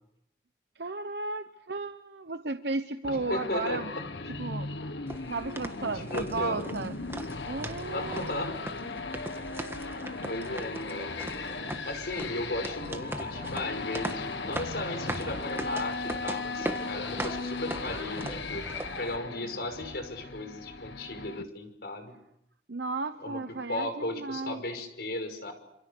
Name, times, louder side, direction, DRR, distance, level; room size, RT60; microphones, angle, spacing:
voice 1, 0.8-3.9 4.3-4.7 5.3-6.9 7.5-8.4 8.9-9.0 22.7-24.6, right 3 dB, 70° right, 9 dB, 1.0 m, -34 dB
sound 1, 3.0-21.4, left 3 dB, 90° left, 1.6 m, -37 dB
voice 2, 3.1-4.1 5.8-6.7 7.9-8.6 9.8-10.0 10.3-11.2 11.8-18.6 19.0-22.2 23.2-23.4 23.7-25.5, left 1 dB, 65° left, 7 dB, 5.7 m, -36 dB
sound 2, 5.1-19.2, right 1 dB, 15° right, 1.6 m, -40 dB
28.0 x 28.0 x 6.7 m, 0.79 s
head